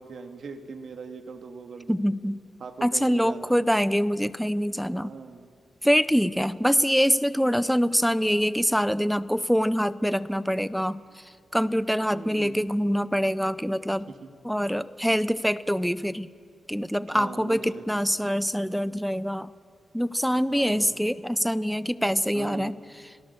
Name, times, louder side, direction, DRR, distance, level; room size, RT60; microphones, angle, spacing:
voice 1, 0.0-2.0 2.6-3.6 5.0-5.5 12.1-12.7 14.2-14.3 17.1-17.9 20.5-21.0 22.3-22.8, right 5 dB, 65° right, 6 dB, 1.8 m, -40 dB
voice 2, 1.9-2.4 2.8-5.1 5.8-11.0 11.5-14.1 14.4-16.3 16.7-19.5 19.9-22.7, equal, ahead, 16 dB, 0.6 m, -24 dB
27.5 x 18.0 x 6.8 m, 2.1 s
cardioid pair, 95°, 0 cm